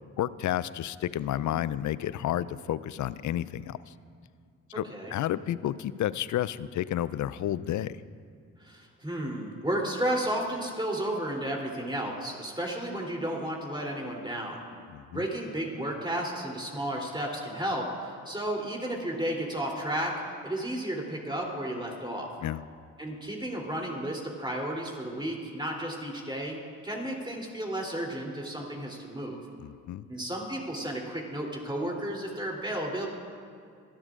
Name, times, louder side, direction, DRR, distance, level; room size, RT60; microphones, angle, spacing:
voice 1, 0.2-3.9 4.7-8.0 14.9-15.2 22.4-22.6 29.6-30.1, left 12 dB, 50° left, 18 dB, 0.5 m, -31 dB
voice 2, 4.7-5.1 8.6-14.6 15.1-22.3 23.0-26.6 26.8-29.4 30.1-33.1, right 1 dB, 10° right, -1 dB, 3.2 m, -33 dB
23.5 x 12.0 x 2.5 m, 2.2 s
hypercardioid pair, 45°, 39 cm